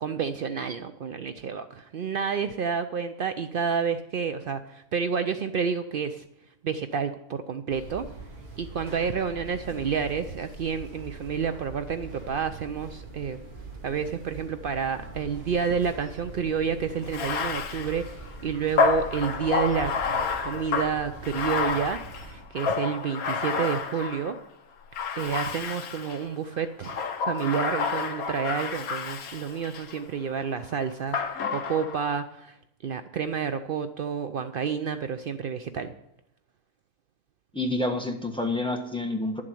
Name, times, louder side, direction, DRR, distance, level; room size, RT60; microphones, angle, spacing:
voice 1, 0.0-6.2 6.6-8.1 8.6-13.4 13.8-24.4 25.1-32.6 32.8-35.9, right 6 dB, 80° right, 10 dB, 0.4 m, -29 dB
sound 1, 7.7-22.4, right 2 dB, 30° right, 3.0 m, -43 dB
Bathtub (filling or washing), 17.0-24.4 24.9-26.2 26.8-30.0 31.1-32.1, left 5 dB, 70° left, 1.4 m, -29 dB
voice 2, 37.5-39.4, left 2 dB, 5° left, 3 dB, 1.2 m, -28 dB
11.5 x 7.6 x 7.7 m, 0.79 s
omnidirectional pair, 1.6 m